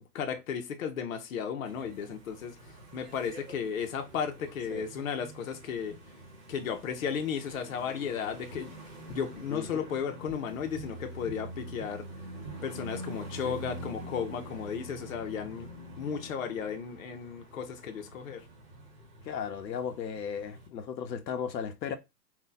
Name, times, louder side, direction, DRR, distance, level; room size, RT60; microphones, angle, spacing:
voice 1, 0.1-2.6 2.9-6.0 6.5-8.7 9.1-12.1 12.6-15.7 16.0-18.4, left 7 dB, 55° left, 0.6 m, -34 dB
sound 1, 1.6-20.7, right 1 dB, 30° right, 1.1 m, -46 dB
voice 2, 9.5-9.9 13.5-13.6 19.2-21.9, left 7 dB, 90° left, 0.8 m, -36 dB
2.7 x 2.1 x 3.8 m
hypercardioid pair, 175°, 50 cm